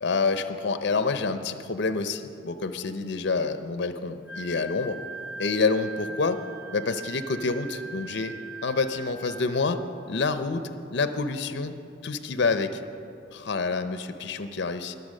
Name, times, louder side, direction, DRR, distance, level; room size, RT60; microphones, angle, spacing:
voice 1, 0.0-5.0 5.4-6.4 6.7-8.3 8.6-9.8 10.1-10.6 10.9-11.7 12.0-12.8 13.3-15.0, left 4 dB, 60° left, 10 dB, 0.6 m, -27 dB
Wind instrument woodwind instrument, 4.3-9.7, right 3 dB, 80° right, 2.3 m, -41 dB
20.0 x 6.8 x 6.4 m, 2.7 s
head